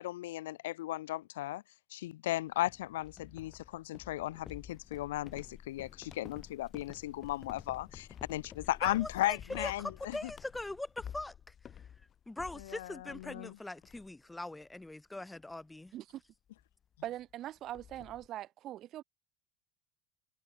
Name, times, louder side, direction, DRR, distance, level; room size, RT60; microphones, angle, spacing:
voice 1, 0.0-1.6 1.9-10.2 12.6-13.6, left 15 dB, 90° left, 0.4 m, -36 dB
sound 1, 2.7-13.5 13.8-14.3 14.6-14.9 15.3-15.5 16.6-16.7 16.9-17.0 17.3-18.3, left 8 dB, 40° left, 6.3 m, -51 dB
voice 2, 8.8-11.5 12.3-15.9, left 2 dB, 10° left, 2.6 m, -42 dB
voice 3, 17.0-19.0, right 13 dB, 50° right, 0.8 m, -42 dB
supercardioid pair, 95°, 0 cm